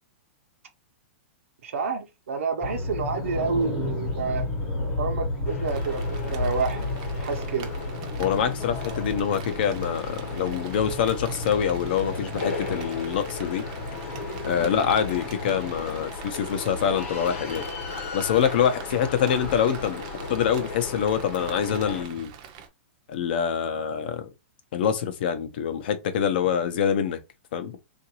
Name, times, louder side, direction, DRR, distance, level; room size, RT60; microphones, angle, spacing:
voice 1, 1.6-4.5 5.0-7.7 14.6-14.9, right 5 dB, 85° right, 0.8 m, -29 dB
sound 1, 2.6-15.8, left 2 dB, 20° left, 0.9 m, -33 dB
sound 2, 5.4-22.0, left 4 dB, 90° left, 1.0 m, -36 dB
Rain, 5.7-22.7, right 9 dB, 30° right, 0.6 m, -45 dB
voice 2, 8.2-13.7 14.4-17.7 18.1-20.0 20.3-22.3 23.1-24.3 24.7-27.2 27.5-27.8, left 8 dB, 45° left, 0.6 m, -25 dB
3.7 x 2.5 x 2.9 m
supercardioid pair, 175°, 7 cm